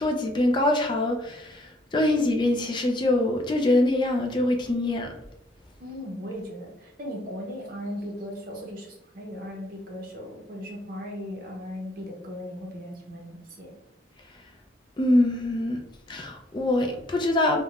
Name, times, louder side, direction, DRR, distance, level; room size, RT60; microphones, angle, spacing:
voice 1, 0.0-5.1 15.0-15.8 16.1-17.6, left 1 dB, 25° left, 3 dB, 0.3 m, -24 dB
voice 2, 5.8-13.7, equal, 50° right, -1 dB, 0.7 m, -37 dB
3.4 x 2.1 x 2.3 m, 0.86 s
head